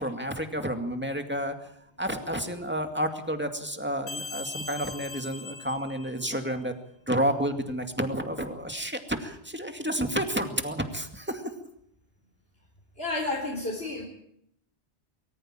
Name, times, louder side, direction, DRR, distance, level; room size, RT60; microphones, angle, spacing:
voice 1, 0.0-1.5 2.0-6.7 7.1-11.5, equal, 10° right, 6 dB, 2.2 m, -30 dB
sound 1, 4.1-6.6, left 3 dB, 80° left, 1.3 m, -40 dB
voice 2, 13.0-14.1, left 2 dB, 60° left, 0 dB, 3.9 m, -31 dB
23.0 x 14.5 x 9.0 m, 0.72 s
omnidirectional pair, 1.1 m